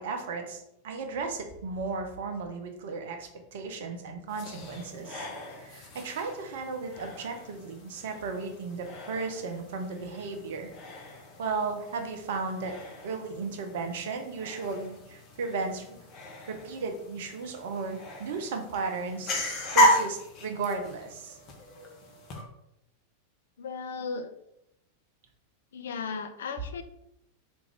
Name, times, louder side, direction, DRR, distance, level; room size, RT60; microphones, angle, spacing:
voice 1, 0.0-5.3 5.6-10.7 11.4-12.8 13.0-16.0 16.5-21.4, right 4 dB, 55° right, 5 dB, 0.6 m, -35 dB
sound 1, 4.3-22.4, equal, 35° left, 0.7 m, -34 dB
voice 2, 23.6-24.3 25.7-26.8, left 5 dB, 60° left, 8 dB, 0.3 m, -36 dB
3.5 x 2.5 x 3.4 m, 0.79 s
figure-of-eight pair, 90°, 0 cm